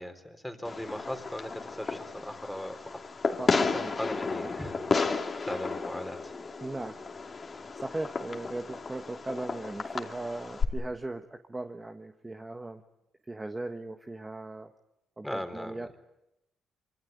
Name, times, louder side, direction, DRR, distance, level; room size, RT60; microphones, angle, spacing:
voice 1, 0.0-3.0 3.7-4.7 5.5-6.2 15.2-15.8, equal, 5° left, 8 dB, 3.8 m, -38 dB
Fireworks, 0.6-10.6, left 4 dB, 35° left, 2.7 m, -33 dB
voice 2, 3.4-4.0 4.4-4.5 5.3-5.5 6.6-7.0 7.2-7.4 7.8-12.8 13.3-14.7 15.2-16.0, right 2 dB, 15° right, 5 dB, 1.4 m, -38 dB
25.5 x 24.5 x 9.5 m, 0.91 s
cardioid pair, 90°, 0 cm